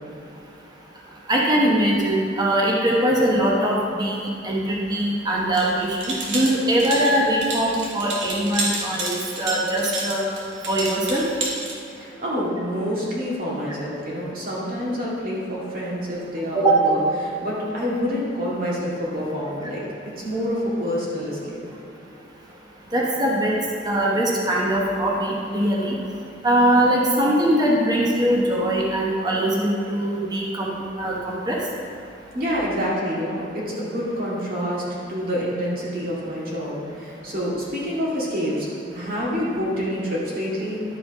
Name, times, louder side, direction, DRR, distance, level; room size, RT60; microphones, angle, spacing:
voice 1, 1.3-10.3 10.7-11.2 16.5-16.7 22.9-23.5 23.8-25.9 26.4-31.6, right 1 dB, 20° right, -3 dB, 1.0 m, -21 dB
sound 1, 5.5-11.7, right 2 dB, 75° right, 1.5 m, -30 dB
voice 2, 11.9-19.8 20.2-21.6 32.3-38.7 38.9-40.8, equal, 50° right, -6 dB, 2.1 m, -27 dB
11.5 x 5.0 x 4.8 m, 2.7 s
head